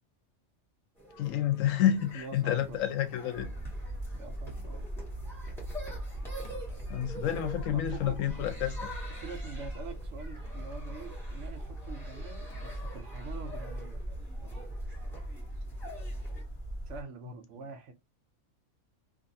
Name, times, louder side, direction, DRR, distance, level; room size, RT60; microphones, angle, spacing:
sound 1, 1.0-16.4, equal, ahead, 1.2 m, -48 dB
voice 1, 1.2-3.5 6.9-8.9, left 10 dB, 90° left, 1.0 m, -29 dB
voice 2, 2.0-2.9 4.1-4.9 7.7-8.2 9.1-14.0 14.4-14.7 16.9-17.9, right 4 dB, 70° right, 0.9 m, -45 dB
sound 2, 3.4-17.0, right 1 dB, 25° left, 1.2 m, -40 dB
sound 3, 4.4-4.9 6.4-7.4 8.5-9.7 10.5-11.8 12.5-14.4, equal, 55° left, 1.2 m, -46 dB
2.6 x 2.6 x 2.6 m
omnidirectional pair, 1.3 m